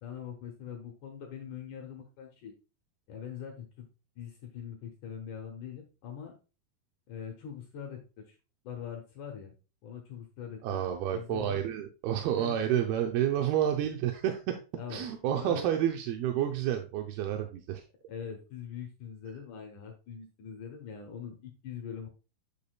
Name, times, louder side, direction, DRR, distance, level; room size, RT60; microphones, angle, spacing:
voice 1, 0.0-2.5 3.1-3.9 4.2-6.3 7.1-8.4 8.6-9.5 9.8-11.6 12.3-12.5 13.4-13.5 14.8-15.1 15.4-15.9 17.3-17.4 18.1-22.1, left 7 dB, 65° left, 2 dB, 2.2 m, -43 dB
voice 2, 10.6-14.6 14.9-17.8, right 10 dB, 85° right, 4 dB, 2.6 m, -30 dB
8.4 x 6.7 x 2.3 m, 0.32 s
omnidirectional pair, 4.5 m